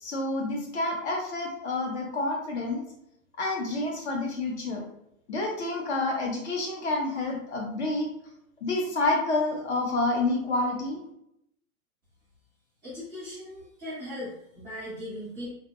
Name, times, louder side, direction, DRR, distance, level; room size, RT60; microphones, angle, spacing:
voice 1, 0.0-2.8 3.4-4.8 5.3-8.1 8.6-11.0, left 2 dB, 50° left, 0 dB, 0.5 m, -28 dB
voice 2, 12.8-15.5, left 1 dB, 10° right, -10 dB, 0.6 m, -38 dB
2.6 x 2.0 x 2.3 m, 0.76 s
supercardioid pair, 175°, 43 cm